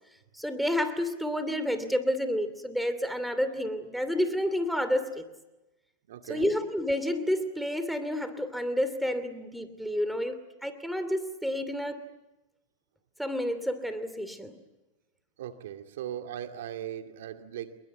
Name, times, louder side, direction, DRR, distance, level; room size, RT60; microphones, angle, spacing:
voice 1, 0.4-5.3 6.3-12.0 13.2-14.6, equal, ahead, 2.8 m, -30 dB
voice 2, 6.1-6.5 15.4-17.8, right 10 dB, 75° right, 2.4 m, -38 dB
27.5 x 22.5 x 8.3 m
hypercardioid pair, 120°, 0 cm